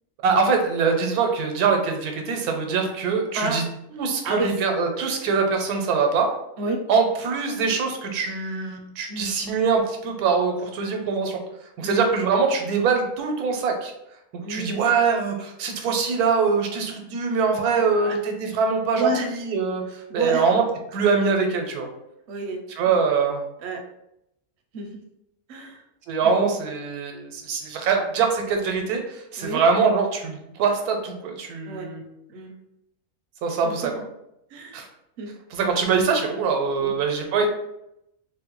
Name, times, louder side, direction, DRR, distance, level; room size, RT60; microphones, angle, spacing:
voice 1, 0.2-3.6 3.9-6.3 6.9-11.4 11.8-13.9 14.5-19.8 20.1-20.6 20.9-21.9 22.8-23.4 26.1-32.0 33.4-34.0 34.7-34.9 35.5-37.5, right 5 dB, 85° right, 3 dB, 1.1 m, -23 dB
voice 2, 3.3-3.7 4.2-4.6 6.6-6.8 9.1-9.3 11.8-12.0 14.4-14.9 17.9-18.2 18.9-19.3 20.1-20.5 22.3-23.0 23.6-23.8 24.7-25.0 25.5-25.8 26.2-26.3 29.4-29.6 31.6-31.9 32.3-32.5 33.6-33.9 34.5-34.8 35.2-35.3 36.8-36.9, right 2 dB, 65° right, 2 dB, 0.7 m, -30 dB
3.4 x 2.1 x 3.0 m, 0.81 s
omnidirectional pair, 1.6 m